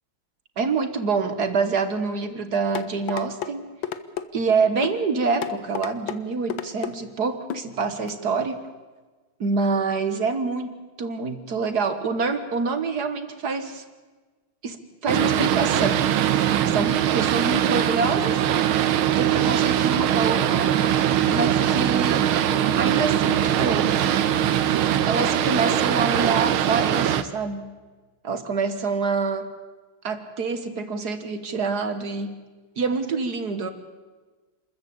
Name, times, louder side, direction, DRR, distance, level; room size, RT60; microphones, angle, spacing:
voice 1, 0.6-3.8 4.3-8.7 9.4-13.8 14.6-16.1 16.6-18.4 19.1-20.7 21.3-22.4 22.8-24.0 25.1-27.7 28.2-29.5 30.0-32.4 32.8-33.7, right 4 dB, 55° right, 10 dB, 1.8 m, -26 dB
sound 1, 2.8-3.5 3.8-4.3 4.8-5.0 5.4-6.2 6.5-6.9 7.5-7.7 8.1-8.2, left 9 dB, 70° left, 1.7 m, -30 dB
Boat Water vehicle, 15.1-27.2, right 10 dB, 85° right, 1.8 m, -21 dB
27.5 x 14.0 x 8.7 m, 1.3 s
omnidirectional pair, 2.3 m